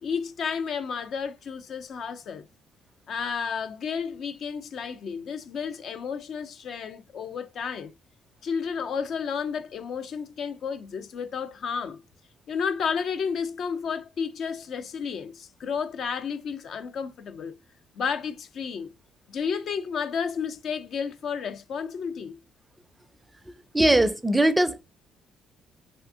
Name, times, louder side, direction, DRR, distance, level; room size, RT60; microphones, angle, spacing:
voice 1, 0.0-2.5 3.1-7.9 8.4-12.0 12.5-17.6 17.9-18.9 19.3-22.4, left 6 dB, 60° left, 0.4 m, -32 dB
voice 2, 23.7-24.8, right 1 dB, 10° right, 0.4 m, -20 dB
3.4 x 2.6 x 2.4 m
hypercardioid pair, 45°, 0 cm